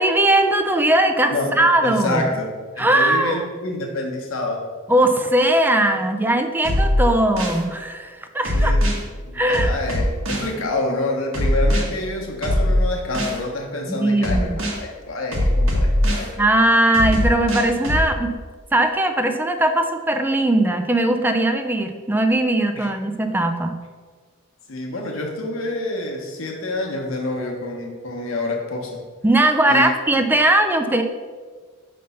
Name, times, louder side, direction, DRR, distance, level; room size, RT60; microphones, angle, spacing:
voice 1, 0.0-2.3 2.8-3.5 4.9-8.7 9.3-9.7 13.9-14.6 16.4-18.3 18.7-23.8 29.2-31.0, right 1 dB, 10° right, 6 dB, 0.4 m, -19 dB
voice 2, 1.3-4.7 8.5-16.4 22.7-22.9 24.7-29.0 29.6-29.9, left 2 dB, 65° left, 0 dB, 1.1 m, -27 dB
sound 1, 6.6-7.6 8.4-9.0 9.5-10.5 11.3-11.8 12.4-13.4 14.2-14.8 15.3-16.3 16.9-18.1, left 1 dB, 65° right, 1.3 m, -20 dB
5.4 x 3.4 x 5.5 m, 1.5 s
head